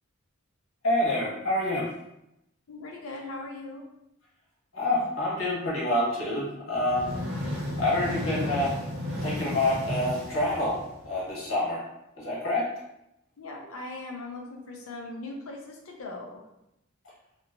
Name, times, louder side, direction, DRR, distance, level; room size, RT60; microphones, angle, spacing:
voice 1, 0.8-1.9 4.7-7.1 7.8-8.8 9.2-11.8 12.2-12.7, left 1 dB, 65° left, -6 dB, 1.2 m, -27 dB
voice 2, 2.7-3.9 13.4-16.5, left 2 dB, 85° left, 0 dB, 0.5 m, -39 dB
sound 1, 6.7-11.3, left 1 dB, 50° right, 0.6 m, -33 dB
2.7 x 2.1 x 2.5 m, 0.85 s
head